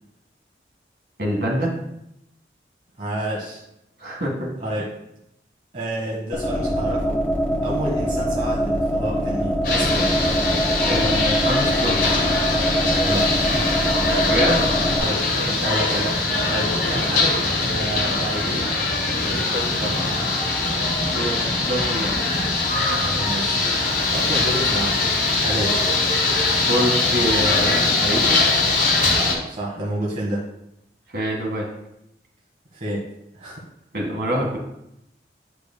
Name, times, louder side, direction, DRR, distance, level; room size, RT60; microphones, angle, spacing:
voice 1, 1.2-1.7 4.0-4.5 10.9-12.0 14.3-14.9 21.1-22.2 26.7-28.4 31.1-31.7 33.9-34.6, equal, 65° right, -1 dB, 1.8 m, -25 dB
voice 2, 3.0-3.6 4.6-4.9 5.7-7.2 7.6-10.1 13.0-13.7 14.0-14.3 15.0-18.7 19.2-20.0 23.1-23.6 24.1-25.0 25.3-25.8 29.5-30.4 32.7-33.1 33.3-33.6, right 1 dB, 40° right, -4 dB, 1.0 m, -29 dB
sound 1, 6.3-15.0, equal, 10° left, 1.0 m, -23 dB
sound 2, 9.6-29.3, left 3 dB, 50° left, 1.6 m, -22 dB
10.0 x 5.0 x 2.2 m, 0.82 s
head